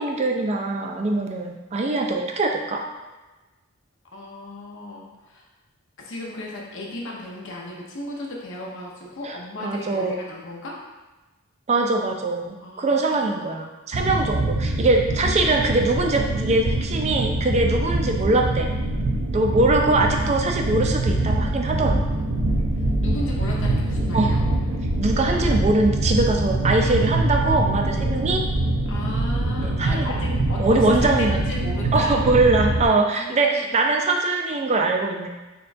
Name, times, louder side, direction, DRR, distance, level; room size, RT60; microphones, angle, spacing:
voice 1, 0.0-2.8 9.2-10.1 11.7-18.7 19.3-22.0 24.1-24.3 25.0-28.4 29.6-31.4 31.9-35.3, right 2 dB, 30° right, 2 dB, 0.4 m, -22 dB
voice 2, 4.1-5.5 6.0-10.8 12.6-13.5 23.0-24.4 28.9-32.2 32.7-33.7, left 1 dB, 60° left, -2 dB, 0.8 m, -35 dB
sound 1, 13.9-32.9, right 2 dB, 90° right, 0.6 m, -24 dB
6.6 x 2.3 x 2.6 m, 1.2 s
head